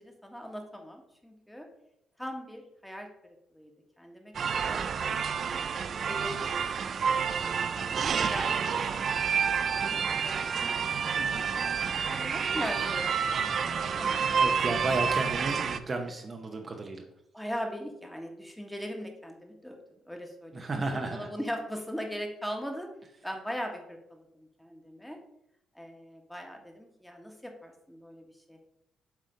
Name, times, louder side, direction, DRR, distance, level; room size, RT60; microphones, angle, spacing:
voice 1, 0.0-1.7 2.2-3.7 4.0-4.9 5.6-5.8 6.1-6.4 6.8-7.4 7.9-9.2 9.6-14.7 17.3-19.8 20.1-20.6 20.9-22.9 23.2-25.2 25.7-28.6, equal, 5° left, 3 dB, 1.5 m, -40 dB
sound 1, 4.3-15.8, right 6 dB, 55° right, 0.5 m, -29 dB
voice 2, 11.2-11.6 14.4-17.0 20.5-21.3, right 3 dB, 35° right, 3 dB, 0.9 m, -33 dB
7.5 x 3.7 x 5.2 m, 0.79 s
cardioid pair, 90°, 0 cm